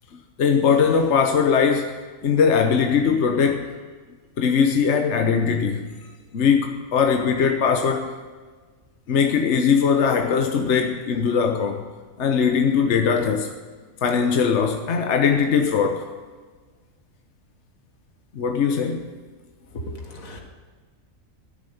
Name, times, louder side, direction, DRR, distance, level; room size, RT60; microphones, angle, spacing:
voice 1, 0.4-2.0 2.2-3.7 4.4-5.9 6.3-8.2 9.1-11.8 12.2-13.5 14.0-16.1 18.4-19.1, left 6 dB, 60° left, 4 dB, 1.2 m, -20 dB
voice 2, 19.7-20.4, equal, 75° left, 2 dB, 2.2 m, -35 dB
13.5 x 7.2 x 9.4 m, 1.4 s
omnidirectional pair, 1.4 m